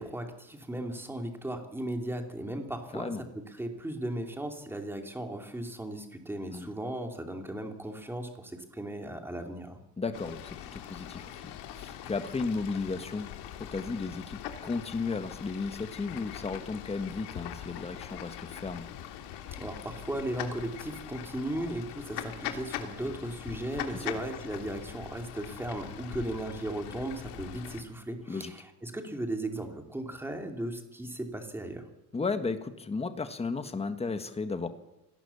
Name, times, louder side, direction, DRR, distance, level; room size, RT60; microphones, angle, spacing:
voice 1, 0.0-9.8 19.5-31.8, right 1 dB, 5° right, 4 dB, 2.8 m, -36 dB
voice 2, 2.9-3.2 6.5-6.7 10.0-13.3 13.6-18.8 23.9-24.1 28.3-28.5 32.1-34.7, left 4 dB, 15° left, 9 dB, 1.6 m, -34 dB
Fowl / Bird, 10.1-27.8, left 10 dB, 90° left, 3.0 m, -42 dB
26.0 x 19.0 x 7.1 m, 0.93 s
cardioid pair, 155°, 39 cm